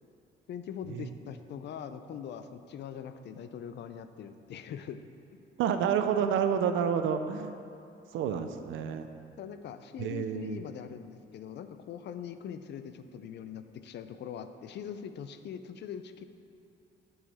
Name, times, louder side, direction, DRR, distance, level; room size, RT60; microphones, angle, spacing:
voice 1, 0.5-5.0 8.2-8.5 9.4-16.2, left 8 dB, 60° left, 10 dB, 0.4 m, -42 dB
voice 2, 5.6-7.5 8.1-9.1 10.0-10.6, right 7 dB, 80° right, 8 dB, 0.5 m, -29 dB
7.3 x 4.9 x 4.1 m, 2.7 s
cardioid pair, 90°, 20 cm